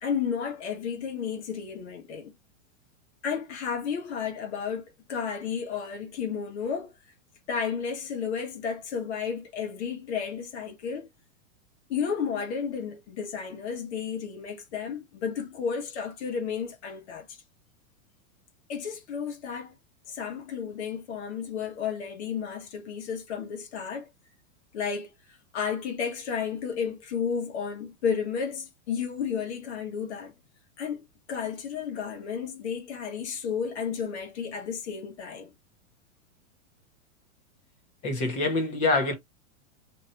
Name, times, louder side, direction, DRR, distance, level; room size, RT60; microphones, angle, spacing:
voice 1, 0.0-2.3 3.2-6.9 7.5-11.1 11.9-17.4 18.7-19.8 20.1-24.1 24.7-30.3 30.8-35.5 38.3-38.4, left 6 dB, 55° left, 1.1 m, -32 dB
voice 2, 38.0-39.1, left 3 dB, 15° left, 0.8 m, -25 dB
2.8 x 2.3 x 4.2 m
supercardioid pair, 170°, 41 cm